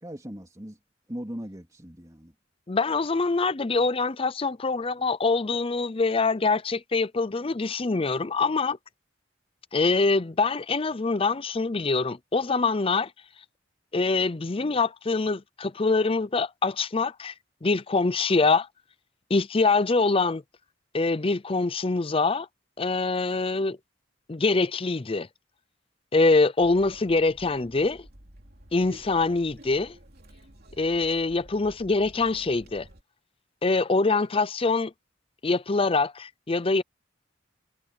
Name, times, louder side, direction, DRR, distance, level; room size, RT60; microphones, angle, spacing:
voice 1, 0.0-0.8 1.1-2.3, equal, 20° right, 3.2 m, -39 dB
voice 2, 2.7-8.8 9.7-13.1 13.9-17.3 17.6-18.7 19.3-20.4 20.9-22.5 22.8-23.8 24.3-25.3 26.1-28.0 28.7-30.0 30.8-32.9 33.6-34.9 35.4-36.8, left 3 dB, 30° left, 0.6 m, -24 dB
sound 1, 26.6-33.0, right 1 dB, 55° right, 3.2 m, -51 dB
head